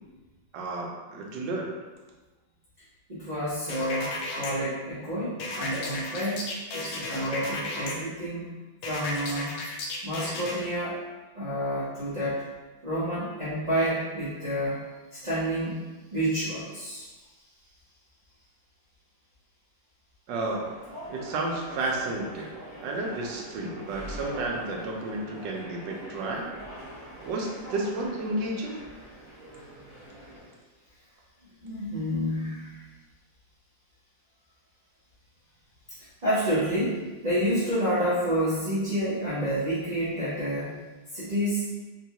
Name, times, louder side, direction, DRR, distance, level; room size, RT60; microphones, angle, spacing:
voice 1, 0.5-1.7 20.3-20.8 21.1-22.6 22.8-26.5 27.2-28.8, right 2 dB, 75° right, -1 dB, 1.2 m, -32 dB
voice 2, 3.1-6.4 6.7-8.5 8.8-9.6 10.0-11.0 11.3-12.4 12.8-14.8 15.1-15.8 16.1-17.1 31.6-32.8 36.2-40.7 41.1-41.7, equal, 40° right, -12 dB, 0.5 m, -29 dB
sound 1, 3.7-4.5 5.4-7.9 8.8-10.6, left 2 dB, 70° left, 0.9 m, -33 dB
sound 2, 20.4-30.5, right 1 dB, 20° left, 0.8 m, -43 dB
3.8 x 2.3 x 2.8 m, 1.2 s
omnidirectional pair, 2.1 m